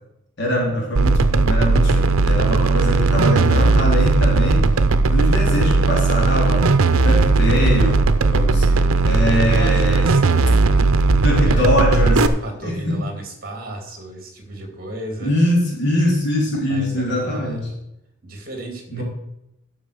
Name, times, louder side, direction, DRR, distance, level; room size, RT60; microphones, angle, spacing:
voice 1, 0.4-4.7 5.1-6.7 7.0-8.0 8.3-8.7 9.0-10.1 11.1-12.3 12.6-13.0 15.2-17.6 18.9-19.0, left 1 dB, 55° left, -3 dB, 3.0 m, -22 dB
sound 1, 1.0-12.3, right 3 dB, 80° right, 0.7 m, -17 dB
voice 2, 8.2-11.0 11.4-11.7 12.2-15.3 16.7-17.7 18.2-19.0, right 1 dB, 45° right, 4 dB, 2.6 m, -34 dB
11.5 x 6.0 x 6.5 m, 0.87 s
head